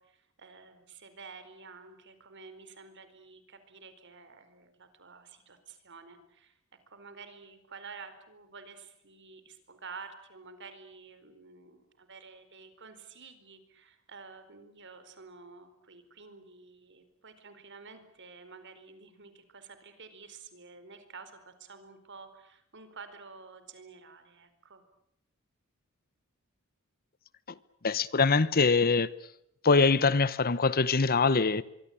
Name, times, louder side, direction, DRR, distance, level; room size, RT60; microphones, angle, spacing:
voice 1, 0.0-6.6 6.9-24.8, right 4 dB, 60° right, 4.5 m, -50 dB
voice 2, 27.8-29.1 29.6-31.6, left 4 dB, 45° left, 1.0 m, -23 dB
24.5 x 24.0 x 8.7 m
head